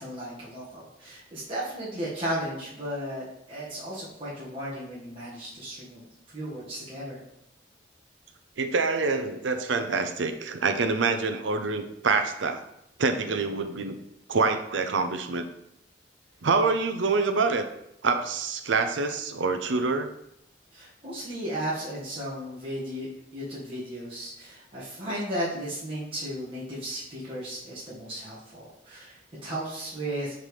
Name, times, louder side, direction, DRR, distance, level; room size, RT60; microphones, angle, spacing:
voice 1, 0.0-6.0 6.3-7.2 20.7-23.1 23.3-30.3, equal, 30° right, -9 dB, 1.5 m, -35 dB
voice 2, 8.6-12.6 13.0-13.9 14.3-15.5 16.4-17.7 18.0-20.1 25.1-25.2, right 4 dB, 85° right, 8 dB, 0.6 m, -26 dB
5.8 x 5.3 x 3.2 m, 0.79 s
head